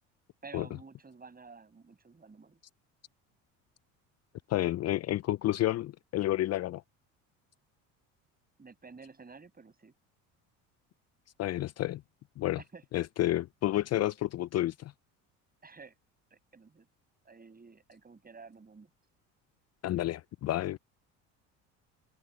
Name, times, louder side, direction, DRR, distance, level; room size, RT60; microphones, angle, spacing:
voice 1, 0.4-2.6 8.6-9.9 12.6-12.8 15.6-15.9 16.3-16.9 17.2-18.9, right 4 dB, 25° right, 7.9 m, -51 dB
voice 2, 4.5-6.8 11.4-12.0 12.4-12.6 12.9-14.9 19.8-20.8, left 14 dB, 45° left, 0.5 m, -30 dB
open air
hypercardioid pair, 75°, 38 cm